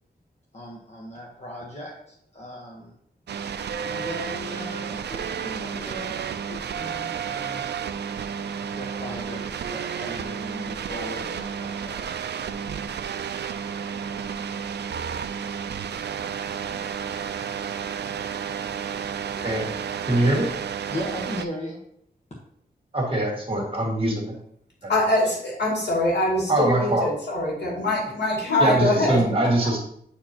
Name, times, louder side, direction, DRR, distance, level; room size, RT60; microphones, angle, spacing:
voice 1, 0.5-2.9 3.8-7.7 8.7-11.9 20.9-21.8, left 1 dB, 40° left, -3 dB, 1.2 m, -38 dB
sound 1, 3.3-21.5, right 7 dB, 75° right, 0.4 m, -31 dB
voice 2, 19.3-19.7 20.1-20.5 22.9-24.3 24.8-24.9 26.5-27.1 28.6-29.8, right 1 dB, 30° right, -2 dB, 2.0 m, -23 dB
voice 3, 24.9-29.5, left 1 dB, 75° left, -4 dB, 2.6 m, -23 dB
9.3 x 4.4 x 2.9 m, 0.70 s
wide cardioid pair, 110°, 17 cm